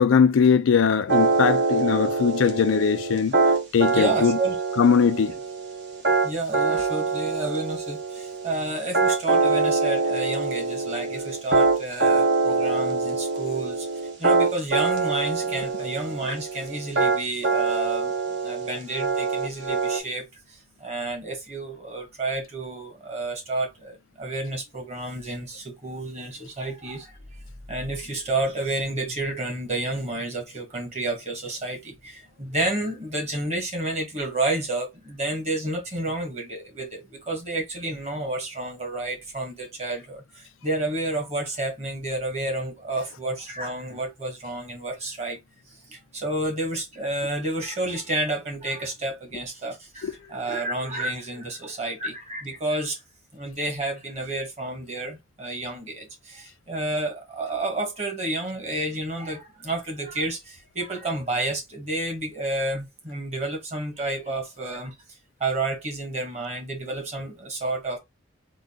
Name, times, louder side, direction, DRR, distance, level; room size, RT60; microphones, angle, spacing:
voice 1, 0.0-3.3 3.7-4.4 4.8-5.3 50.0-50.1, left 6 dB, 85° left, 0.4 m, -20 dB
sound 1, 1.1-20.0, right 3 dB, 60° right, 1.0 m, -24 dB
voice 2, 3.9-4.6 6.2-13.9 14.2-18.1 18.4-27.2 27.7-45.4 45.9-53.0 53.3-64.9 65.4-68.0, right 2 dB, 35° right, 1.4 m, -30 dB
3.8 x 2.3 x 3.6 m
head